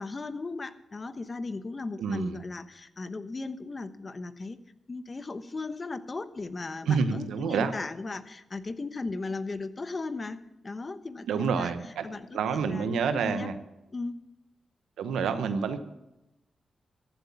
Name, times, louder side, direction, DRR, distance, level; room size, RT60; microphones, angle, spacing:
voice 1, 0.0-4.6 4.9-11.7 12.0-13.5 13.9-14.2, left 3 dB, 40° left, 12 dB, 1.0 m, -37 dB
voice 2, 2.0-2.4 6.9-7.7 11.3-12.1 12.3-13.5 15.0-15.8, right 6 dB, 90° right, 10 dB, 0.9 m, -28 dB
14.5 x 7.9 x 7.1 m, 0.91 s
supercardioid pair, 50°, 0 cm